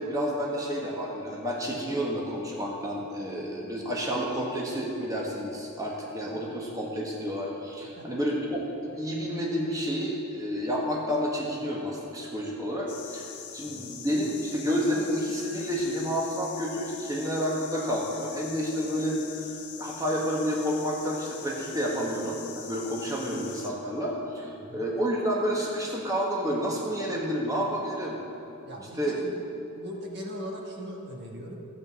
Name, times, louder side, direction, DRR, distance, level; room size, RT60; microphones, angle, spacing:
voice 1, 0.0-13.3 13.5-28.2 28.9-29.2, equal, 15° right, -2 dB, 1.3 m, -30 dB
sound 1, 12.9-23.7, left 8 dB, 85° left, 1.0 m, -43 dB
voice 2, 28.6-29.3 29.7-31.5, equal, 50° right, -1 dB, 1.3 m, -39 dB
15.0 x 7.9 x 4.2 m, 2.8 s
head